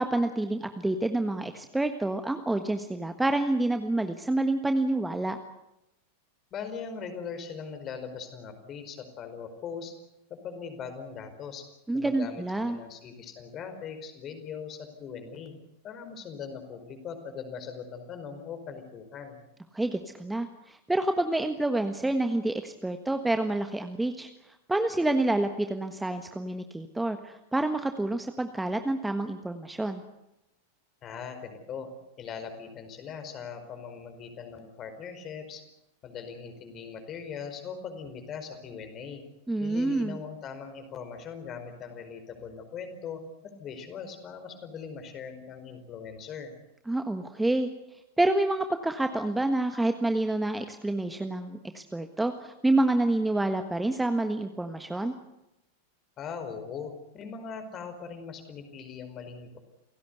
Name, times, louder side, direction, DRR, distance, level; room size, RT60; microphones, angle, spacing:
voice 1, 0.0-5.4 11.9-12.8 19.7-24.3 24.7-30.0 39.5-40.2 46.9-47.7 48.2-55.1, right 2 dB, 5° right, 7 dB, 1.4 m, -28 dB
voice 2, 6.5-9.9 10.3-11.6 11.9-15.5 15.8-19.4 31.0-31.9 32.2-35.6 36.0-39.2 39.6-43.2 43.6-46.5 54.9-55.2 56.2-59.6, left 6 dB, 30° left, 8 dB, 4.9 m, -40 dB
29.0 x 17.5 x 8.2 m, 0.90 s
figure-of-eight pair, 90°, 0 cm